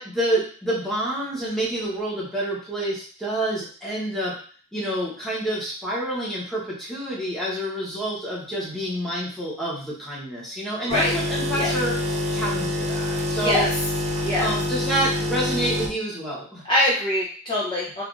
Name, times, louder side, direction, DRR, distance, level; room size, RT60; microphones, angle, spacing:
voice 1, 0.0-4.3 4.7-11.9 12.3-13.6 14.4-16.6, right 1 dB, ahead, -7 dB, 1.0 m, -28 dB
sound 1, 10.9-15.9, left 1 dB, 35° right, 0.4 m, -26 dB
voice 2, 16.6-18.0, left 1 dB, 25° left, -7 dB, 0.6 m, -23 dB
3.3 x 2.4 x 2.5 m, 0.43 s
head